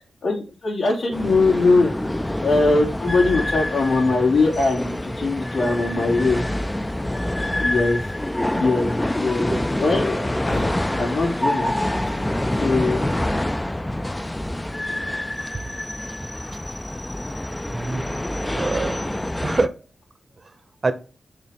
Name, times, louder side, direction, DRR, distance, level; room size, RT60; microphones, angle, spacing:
voice 1, 0.2-1.9 2.4-6.4 7.6-8.0 8.5-11.7 12.6-13.1, left 3 dB, 90° left, -3 dB, 3.3 m, -21 dB
sound 1, 1.1-19.7, left 1 dB, 10° left, 0.4 m, -26 dB
voice 2, 16.2-16.6 17.7-18.1 18.5-19.1 19.4-19.7 20.8-20.9, right 3 dB, 40° right, 12 dB, 0.8 m, -25 dB
6.7 x 3.2 x 6.0 m, 0.34 s
wide cardioid pair, 125°, 0 cm